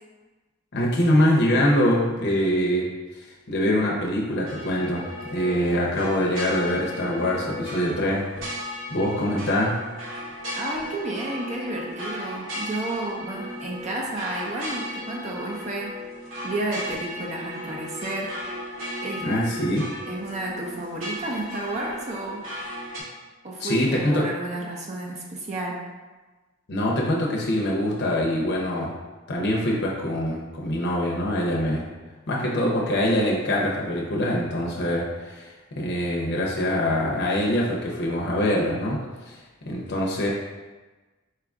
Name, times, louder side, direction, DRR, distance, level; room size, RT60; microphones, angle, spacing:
voice 1, 0.7-2.9 3.2-8.3 8.9-9.8 19.2-19.9 23.6-24.2 26.7-28.9 29.3-31.9 32.3-35.5 35.8-39.4 39.7-40.3, equal, 60° left, -3 dB, 0.6 m, -24 dB
sound 1, 4.5-23.0, equal, 80° right, 1.0 m, -36 dB
voice 2, 10.6-15.9 16.4-18.3 19.0-19.3 20.1-22.4 23.4-25.8, right 2 dB, 35° right, -2 dB, 0.5 m, -31 dB
4.6 x 2.4 x 3.5 m, 1.2 s
head